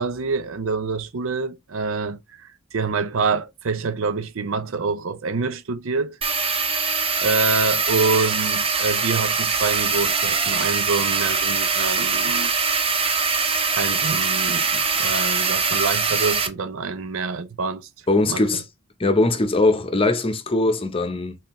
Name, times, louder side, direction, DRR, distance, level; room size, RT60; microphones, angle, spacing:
voice 1, 0.0-6.2 6.7-6.8 7.2-12.5 13.8-17.9 18.3-18.4, right 4 dB, 85° right, 0.6 m, -26 dB
sound 1, 6.2-16.5, right 5 dB, 30° right, 0.6 m, -22 dB
voice 2, 18.1-18.6 19.0-21.4, left 2 dB, 25° left, 0.7 m, -20 dB
4.3 x 3.9 x 3.0 m
head